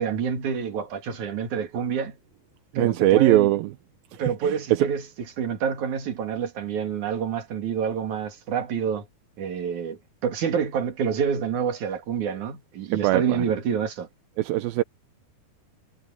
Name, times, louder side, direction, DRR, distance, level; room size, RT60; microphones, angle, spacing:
voice 1, 0.0-2.2 2.8-3.5 4.2-5.0 5.4-9.1 9.4-14.1, right 7 dB, 55° right, 3.6 m, -27 dB
voice 2, 2.7-3.7 4.1-4.9 12.9-13.5 14.4-14.8, right 16 dB, 80° right, 2.5 m, -21 dB
omnidirectional pair, 4.3 m